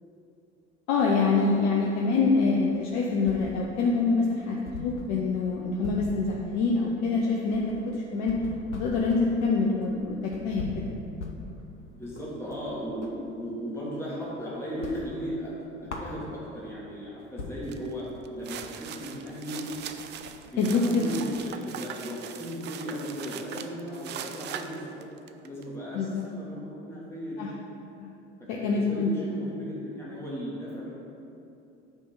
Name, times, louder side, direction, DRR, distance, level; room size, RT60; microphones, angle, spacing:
voice 1, 0.9-4.6 4.8-8.4 8.7-10.9 20.6-21.0 25.9-26.2 27.4-27.5 28.0-28.1 28.5-29.1, left 4 dB, 50° left, -1 dB, 0.8 m, -25 dB
voice 2, 1.4-1.7 11.9-15.5 15.8-18.1 18.3-19.6 20.4-25.1 25.4-27.4 28.5-30.9, equal, 5° left, -7 dB, 1.6 m, -36 dB
sound 1, 2.7-3.9 4.2-4.3 4.6-13.2 13.6-14.4 14.7-16.7 17.1-17.2 17.4-21.5, left 3 dB, 90° left, 0.7 m, -42 dB
sound 2, 17.7-17.9 18.3-25.6, right 9 dB, 30° right, 0.4 m, -40 dB
9.1 x 3.5 x 5.5 m, 2.8 s
figure-of-eight pair, 65°, 34 cm